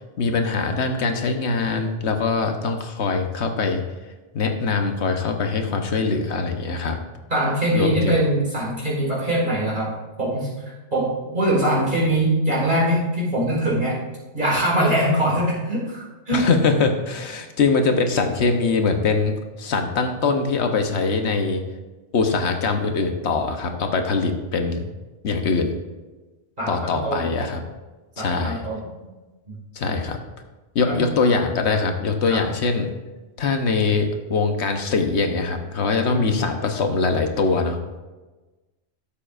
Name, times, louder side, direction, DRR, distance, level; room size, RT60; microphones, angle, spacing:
voice 1, 0.2-3.8 4.3-7.0 7.7-8.2 16.3-21.6 22.1-24.9 25.2-25.8 26.7-27.6 28.2-28.6 29.7-30.2 30.7-32.9 33.4-37.8, left 4 dB, 65° left, 5 dB, 1.1 m, -22 dB
voice 2, 7.3-10.5 10.9-14.0 14.3-16.5 26.6-27.3 28.2-28.9 29.5-29.6 30.9-31.1 32.3-32.4 36.0-36.4, right 1 dB, 40° right, -6 dB, 2.2 m, -22 dB
13.0 x 7.5 x 2.5 m, 1.2 s
omnidirectional pair, 1.3 m